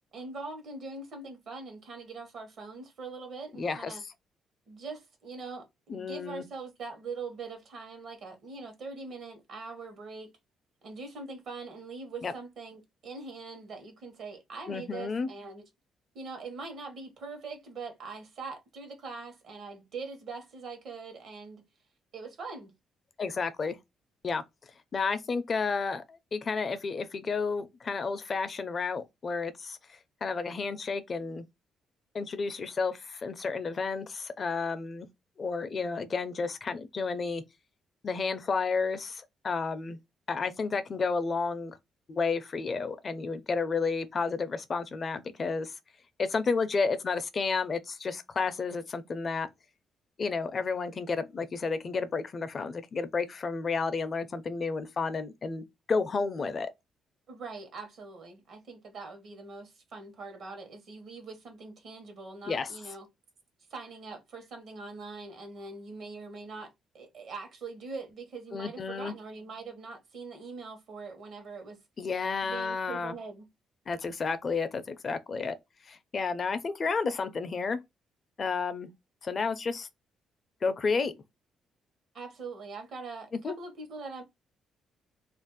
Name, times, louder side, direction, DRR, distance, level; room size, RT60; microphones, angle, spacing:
voice 1, 0.1-4.0 4.7-10.3 10.8-15.7 16.1-21.6 22.1-22.7 57.3-63.1 63.7-66.7 66.9-71.8 72.4-73.5 82.1-84.2, right 4 dB, 65° right, 1.0 m, -42 dB
voice 2, 3.5-4.1 5.9-6.5 12.2-12.3 14.7-15.3 23.2-23.8 24.2-24.4 24.9-31.4 32.1-35.1 35.4-37.4 38.0-40.0 40.3-41.8 42.1-45.7 46.2-49.5 50.2-56.7 62.5-62.7 68.5-69.1 72.0-73.2 73.9-75.6 75.9-77.8 78.4-78.9 79.2-79.9 80.6-81.1 83.4-83.6, left 4 dB, 40° left, 0.5 m, -31 dB
2.5 x 2.0 x 3.8 m
cardioid pair, 90°, 0 cm